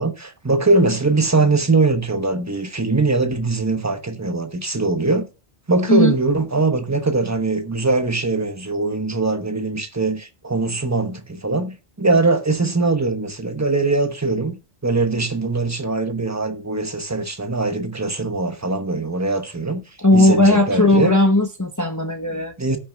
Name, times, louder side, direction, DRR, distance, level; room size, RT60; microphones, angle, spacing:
voice 1, 0.0-5.3 5.7-19.8 20.1-21.2 22.3-22.8, right 3 dB, 15° right, 1.1 m, -21 dB
voice 2, 20.0-22.5, left 1 dB, 20° left, 1.0 m, -16 dB
17.5 x 6.3 x 2.4 m
omnidirectional pair, 1.1 m